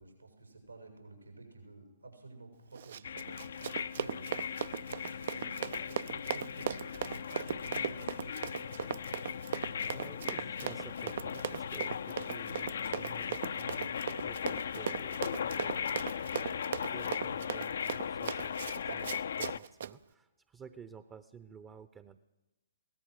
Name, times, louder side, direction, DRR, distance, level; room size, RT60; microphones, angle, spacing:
voice 1, 0.0-8.9, right 2 dB, 85° right, 3 dB, 7.0 m, -52 dB
Run, 2.7-19.9, right 8 dB, 50° right, 0.6 m, -38 dB
sound 1, 3.0-19.6, left 7 dB, 55° left, 0.6 m, -38 dB
voice 2, 9.9-14.0 14.2-15.9 16.5-22.2, right 7 dB, 15° right, 12 dB, 0.8 m, -53 dB
Car / Alarm, 12.1-17.6, right 4 dB, 70° right, 3.9 m, -61 dB
23.0 x 18.0 x 6.5 m, 1.0 s
figure-of-eight pair, 125°, 0 cm